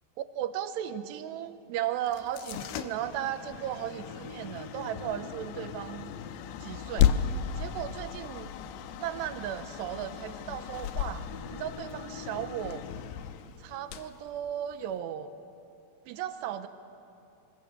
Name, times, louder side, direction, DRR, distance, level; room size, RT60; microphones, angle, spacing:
voice 1, 0.3-6.1 6.6-7.1 7.6-8.5 9.0-11.2 11.5-12.9 13.6-15.3 16.1-16.7, right 11 dB, 85° right, 11 dB, 2.9 m, -36 dB
sound 1, 2.1-15.0, left 9 dB, 85° left, 2.8 m, -34 dB
24.0 x 23.0 x 6.7 m, 2.7 s
omnidirectional pair, 4.9 m